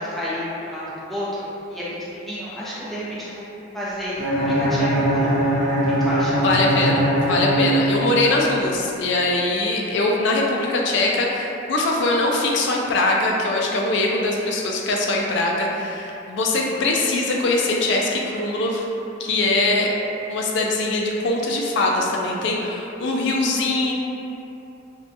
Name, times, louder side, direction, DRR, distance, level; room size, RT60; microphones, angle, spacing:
voice 1, 0.0-3.4 3.7-5.5 5.9-6.4, equal, ahead, -10 dB, 0.5 m, -30 dB
Bowed string instrument, 4.2-8.3, right 1 dB, 45° right, 1.0 m, -21 dB
voice 2, 6.3-18.9 19.2-19.9 20.3-23.9, left 2 dB, 60° left, -1 dB, 0.3 m, -22 dB
2.7 x 2.2 x 2.5 m, 2.8 s
head